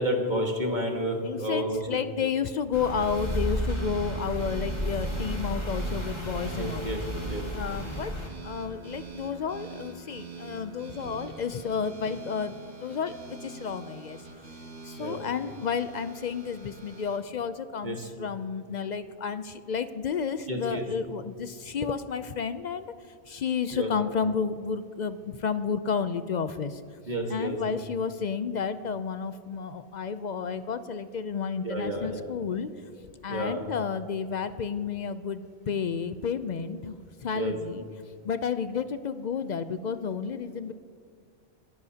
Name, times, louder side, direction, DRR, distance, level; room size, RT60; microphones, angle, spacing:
voice 1, 0.0-1.8 6.6-7.0 7.3-7.4 15.0-15.2 17.8-18.1 20.5-20.9 23.7-23.9 27.1-27.6 31.6-32.2 33.3-33.6 37.3-37.6, equal, 45° right, 1 dB, 1.6 m, -30 dB
voice 2, 1.2-6.9 7.5-8.2 8.4-14.2 14.8-22.9 23.3-26.8 27.3-32.7 33.0-37.8 38.2-40.7, left 6 dB, 55° left, 12 dB, 0.5 m, -31 dB
sound 1, 2.7-8.3, equal, 25° left, 1.6 m, -32 dB
sound 2, 3.1-17.2, right 3 dB, 80° right, 2.3 m, -44 dB
27.0 x 10.5 x 2.8 m, 2.1 s
omnidirectional pair, 1.1 m